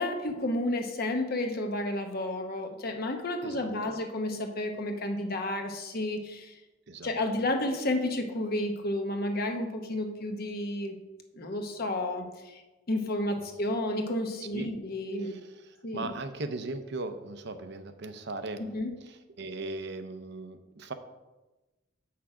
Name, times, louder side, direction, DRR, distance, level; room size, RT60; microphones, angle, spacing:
voice 1, 0.0-6.5 7.0-11.0 11.4-12.6 12.9-15.4 15.8-16.1 18.7-18.9, left 1 dB, 55° left, 4 dB, 1.0 m, -31 dB
voice 2, 3.4-3.9 6.9-7.1 13.4-13.5 14.5-14.7 15.2-18.6 19.0-20.9, right 2 dB, 60° right, 8 dB, 0.7 m, -39 dB
7.4 x 6.0 x 4.9 m, 1.1 s
head